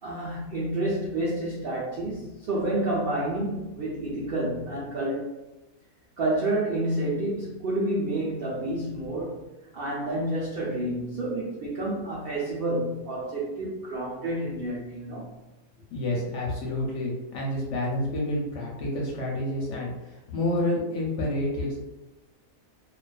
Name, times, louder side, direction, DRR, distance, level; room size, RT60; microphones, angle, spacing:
voice 1, 0.0-5.3 6.2-9.4 9.7-15.3, right 1 dB, 75° right, -6 dB, 0.5 m, -29 dB
voice 2, 15.9-21.8, left 1 dB, 65° left, -3 dB, 0.8 m, -29 dB
2.3 x 2.3 x 2.3 m, 1.0 s
omnidirectional pair, 1.6 m